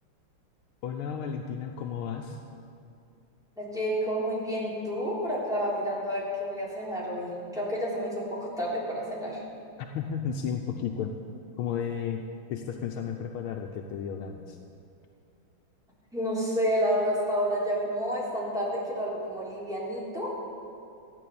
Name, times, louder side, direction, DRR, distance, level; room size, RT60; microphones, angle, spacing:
voice 1, 0.8-2.4 9.9-11.1 11.6-12.2 12.5-14.6, left 7 dB, 85° left, 3 dB, 1.6 m, -33 dB
voice 2, 3.6-9.4 16.1-20.3, equal, ahead, -7 dB, 3.2 m, -30 dB
14.5 x 9.4 x 6.9 m, 2.5 s
omnidirectional pair, 2.3 m